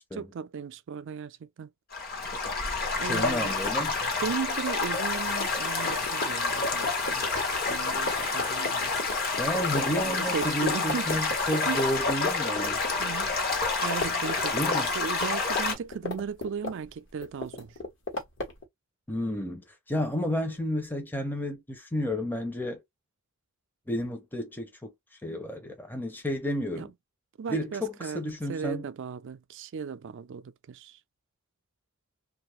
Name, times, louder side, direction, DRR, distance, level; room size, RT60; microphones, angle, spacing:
voice 1, 0.1-1.7 3.0-3.6 4.2-7.3 7.7-9.0 9.7-11.2 11.7-11.9 13.0-13.4 13.8-17.7 26.7-26.9 27.4-28.2 28.5-31.0, right 6 dB, 60° right, 0.4 m, -36 dB
Stream / Gurgling / Trickle dribble, 1.9-15.7, left 3 dB, 45° left, 0.9 m, -29 dB
voice 2, 3.0-4.0 9.4-12.8 14.5-14.9 19.1-22.8 23.9-24.9 25.2-26.9 27.5-28.9, equal, 10° left, 0.6 m, -31 dB
sound 1, 4.9-12.0, left 5 dB, 80° left, 1.1 m, -44 dB
sound 2, 5.3-12.2 12.5-13.6 13.9-14.8 15.1-16.9 17.2-18.6, left 2 dB, 60° left, 1.2 m, -36 dB
2.6 x 2.4 x 3.0 m
head